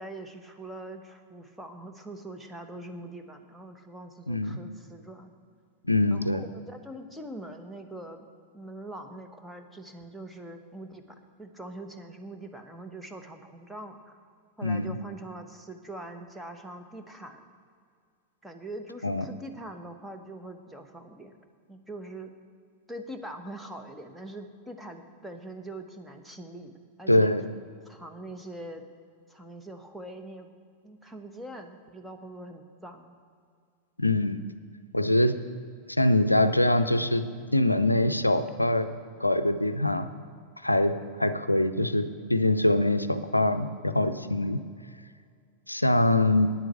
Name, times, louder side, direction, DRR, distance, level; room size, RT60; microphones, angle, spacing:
voice 1, 0.0-5.3 6.1-11.0 11.4-14.2 14.6-17.4 18.4-21.4 21.7-22.3 22.9-26.7 27.0-27.3 27.8-28.8 29.3-30.5 30.8-33.2 44.4-44.8, right 1 dB, 5° right, 4 dB, 1.0 m, -43 dB
voice 2, 4.3-4.6 5.9-6.4 14.6-15.0 19.0-19.2 27.1-27.4 34.0-34.4 34.9-35.3 36.0-37.2 37.5-38.9 39.2-40.1 40.6-40.9 41.2-44.6 45.7-46.5, left 1 dB, 85° left, 11 dB, 0.5 m, -23 dB
9.3 x 7.6 x 7.7 m, 2.2 s
figure-of-eight pair, 90°, 0 cm